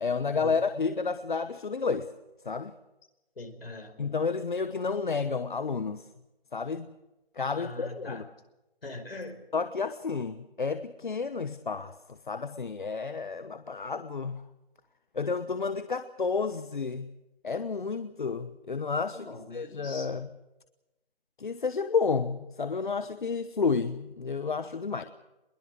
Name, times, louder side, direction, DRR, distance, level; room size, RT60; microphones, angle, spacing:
voice 1, 0.0-2.1 2.4-2.7 4.0-6.1 6.5-6.9 7.3-8.2 9.5-14.4 15.1-17.1 17.4-20.3 21.4-25.0, left 5 dB, 55° left, 11 dB, 1.1 m, -31 dB
voice 2, 3.4-3.9 7.6-8.3 8.8-9.4 19.1-20.2, left 2 dB, 70° left, 5 dB, 5.3 m, -42 dB
22.0 x 21.5 x 6.6 m, 0.99 s
figure-of-eight pair, 170°, 30 cm